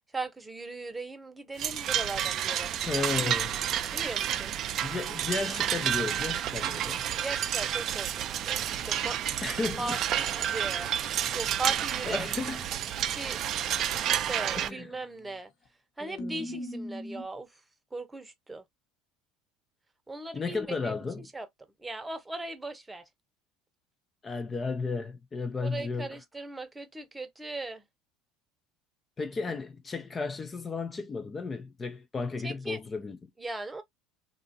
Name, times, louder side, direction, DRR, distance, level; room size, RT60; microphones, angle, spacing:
voice 1, 0.1-3.1 3.9-4.5 7.2-9.2 9.8-10.9 11.3-12.3 13.0-13.4 14.2-15.5 16.0-17.5 17.9-18.6 20.1-20.9 21.3-21.5 21.8-23.0 25.6-27.8 32.4-32.8 33.4-33.8, right 2 dB, 15° right, 0.8 m, -38 dB
sound 1, 1.6-14.7, right 10 dB, 50° right, 0.4 m, -30 dB
voice 2, 2.8-3.5 4.8-7.0 9.4-10.0 12.1-12.7 14.6-14.9 16.0-16.6 20.3-21.3 24.2-26.2 29.2-33.3, left 4 dB, 25° left, 0.4 m, -34 dB
sound 2, 8.7-12.1 14.9-15.3 15.7-15.8 16.2-17.2, left 1 dB, 60° left, 1.1 m, -44 dB
2.8 x 2.5 x 2.6 m
hypercardioid pair, 80°, 0 cm